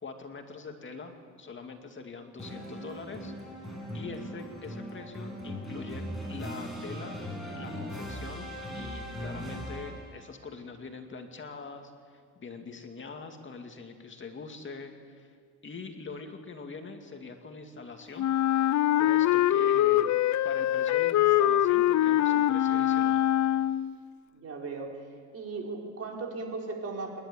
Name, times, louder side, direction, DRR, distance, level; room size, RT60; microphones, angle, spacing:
voice 1, 0.0-3.3 3.6-7.2 7.5-15.3 15.6-18.3 19.0-20.2 20.4-23.2, left 4 dB, 40° left, 5 dB, 2.4 m, -43 dB
sound 1, 2.4-10.2, equal, ahead, 7.4 m, -39 dB
Wind instrument woodwind instrument, 18.2-24.0, left 12 dB, 70° left, 0.6 m, -24 dB
voice 2, 24.3-25.1 25.3-27.2, right 3 dB, 50° right, 1 dB, 4.4 m, -37 dB
27.5 x 11.5 x 9.9 m, 2.1 s
cardioid pair, 90°, 30 cm